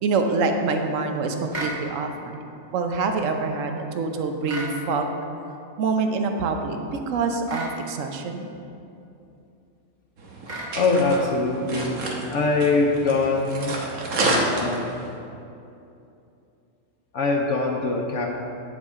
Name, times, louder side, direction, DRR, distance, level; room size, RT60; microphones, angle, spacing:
voice 1, 0.0-2.4 2.7-5.1 5.8-8.5, right 4 dB, 70° right, 5 dB, 1.1 m, -25 dB
sound 1, 1.5-1.8 4.5-4.8 7.5-7.8 10.5-10.8, right 2 dB, 35° right, 1.1 m, -32 dB
sound 2, 10.2-15.1, right 2 dB, 85° right, 1.5 m, -29 dB
voice 2, 10.7-12.0 12.3-13.8 14.2-14.9 17.1-18.3, left 3 dB, 65° left, 0 dB, 0.9 m, -23 dB
9.4 x 7.3 x 3.6 m, 2.7 s
omnidirectional pair, 1.5 m